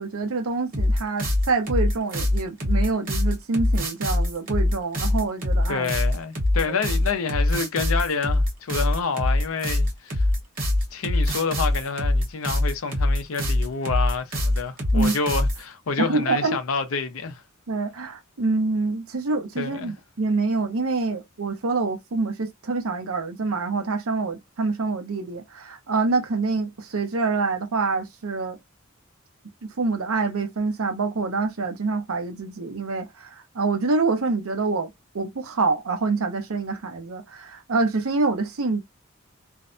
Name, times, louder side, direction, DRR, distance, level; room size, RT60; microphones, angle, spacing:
voice 1, 0.0-5.9 6.7-6.8 14.9-15.1 16.0-16.6 17.7-28.6 29.8-34.9 35.1-38.8, right 3 dB, 85° right, 0.7 m, -26 dB
sound 1, 0.7-15.6, left 1 dB, 40° right, 1.1 m, -23 dB
voice 2, 5.7-10.3 10.9-17.4 19.6-19.9, left 5 dB, 75° left, 0.6 m, -28 dB
2.6 x 2.1 x 2.5 m
head